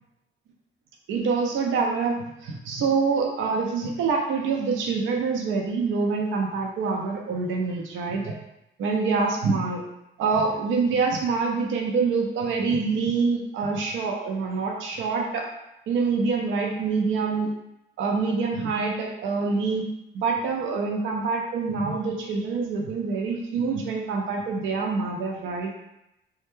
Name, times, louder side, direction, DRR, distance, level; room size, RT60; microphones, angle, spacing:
voice 1, 1.1-8.3 8.8-9.8 10.2-15.5 15.9-17.5 18.0-19.9 20.1-25.7, right 4 dB, 75° right, 0 dB, 0.5 m, -26 dB
2.2 x 2.1 x 3.0 m, 0.87 s
cardioid pair, 90°, 20 cm